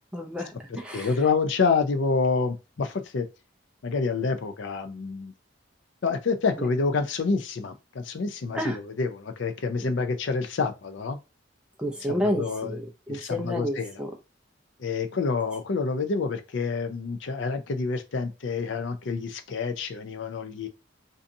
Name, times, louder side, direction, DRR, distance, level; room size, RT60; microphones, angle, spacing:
voice 1, 0.1-1.2 6.6-6.7 8.5-8.8 9.8-9.9 11.8-14.2, equal, 5° right, 0.4 m, -30 dB
voice 2, 0.9-3.3 3.8-5.3 6.0-11.2 12.1-12.8 13.1-13.9 14.8-20.7, left 4 dB, 60° left, 0.4 m, -28 dB
2.6 x 2.3 x 2.6 m
head